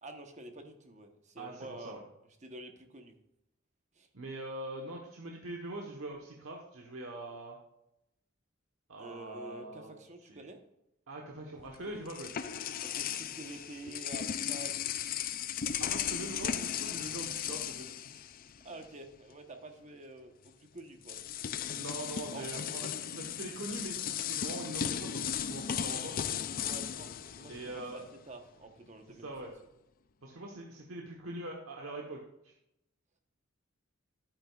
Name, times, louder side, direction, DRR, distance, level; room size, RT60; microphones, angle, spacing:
voice 1, 0.0-2.0 2.4-3.1 3.9-4.1 9.0-10.6 12.8-14.8 18.6-21.2 22.3-22.6 26.6-29.3, right 2 dB, 35° right, 5 dB, 1.1 m, -48 dB
voice 2, 1.4-2.0 4.1-7.6 8.9-9.9 10.3-10.5 11.1-12.3 15.8-18.3 21.7-22.9 23.1-26.1 27.5-28.0 29.2-29.5 30.2-32.5, right 1 dB, 90° right, -1 dB, 1.2 m, -43 dB
sound 1, 11.6-18.9 19.1-19.3 20.5-20.6 21.0-28.2, left 9 dB, 45° left, 0.4 m, -36 dB
11.0 x 9.1 x 2.4 m, 0.84 s
head